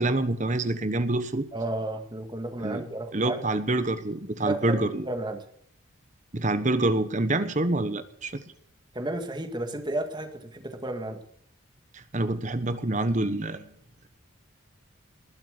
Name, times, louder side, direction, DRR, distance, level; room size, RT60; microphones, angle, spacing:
voice 1, 0.0-1.5 2.6-2.8 3.1-5.0 6.3-8.4 11.9-13.7, right 2 dB, 35° right, 11 dB, 1.1 m, -26 dB
voice 2, 1.5-3.4 4.4-5.4 8.9-11.2, right 2 dB, 20° right, 4 dB, 2.0 m, -32 dB
20.0 x 7.7 x 6.6 m, 0.69 s
head